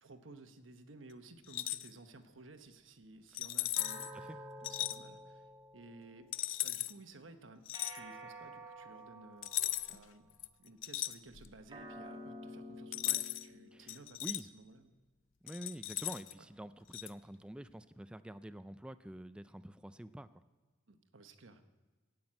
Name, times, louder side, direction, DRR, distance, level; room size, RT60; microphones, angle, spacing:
voice 1, 0.0-6.3 6.6-9.5 9.9-10.3 10.6-14.9 16.4-16.5 20.9-21.7, right 2 dB, 85° right, 8 dB, 1.1 m, -56 dB
sound 1, 1.4-1.9 3.3-4.1 4.6-5.0 6.3-6.9 7.7-8.0 9.4-10.0 10.4-11.6 12.9-13.5 13.9-14.4 15.5-16.3 16.9-17.1, left 15 dB, 85° left, 0.5 m, -37 dB
sound 2, 3.8-6.3 7.7-10.3 11.7-14.3, equal, 25° right, 2.2 m, -50 dB
voice 2, 13.7-14.4 15.4-20.3, right 1 dB, 5° right, 12 dB, 0.3 m, -47 dB
16.0 x 6.0 x 8.9 m, 1.3 s
head